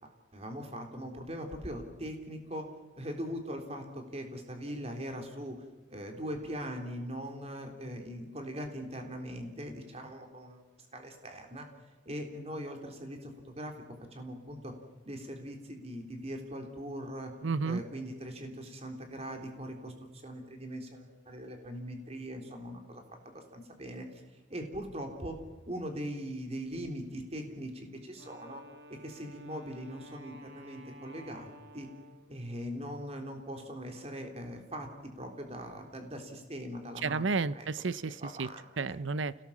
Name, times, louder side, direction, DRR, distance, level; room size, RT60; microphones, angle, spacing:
voice 1, 0.0-2.7 3.0-5.6 5.9-10.7 10.9-11.7 12.1-13.7 14.0-14.8 15.1-17.3 17.6-24.2 24.5-25.4 25.6-28.6 28.9-31.5 31.7-31.9 32.3-37.2 37.5-37.7 38.1-39.0, equal, 35° right, 4 dB, 3.6 m, -41 dB
voice 2, 17.4-17.8 37.0-38.5 38.8-39.4, right 4 dB, 80° right, 17 dB, 0.7 m, -32 dB
Wind instrument woodwind instrument, 28.1-32.5, right 1 dB, 65° right, 2.6 m, -53 dB
29.5 x 18.0 x 7.3 m, 1.2 s
head